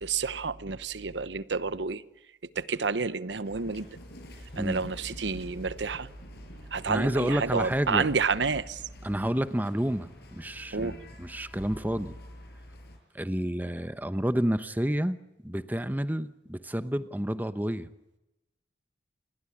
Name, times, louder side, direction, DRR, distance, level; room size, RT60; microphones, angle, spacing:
voice 1, 0.0-2.0 2.5-3.9 4.6-6.1 6.7-8.8 10.7-11.0, right 4 dB, 80° right, 1.0 m, -29 dB
sound 1, 3.4-13.0, equal, 60° left, 6.2 m, -48 dB
voice 2, 6.9-8.1 9.0-12.1 13.1-15.2 15.4-17.9, equal, 10° right, 0.9 m, -29 dB
29.5 x 20.5 x 8.7 m
head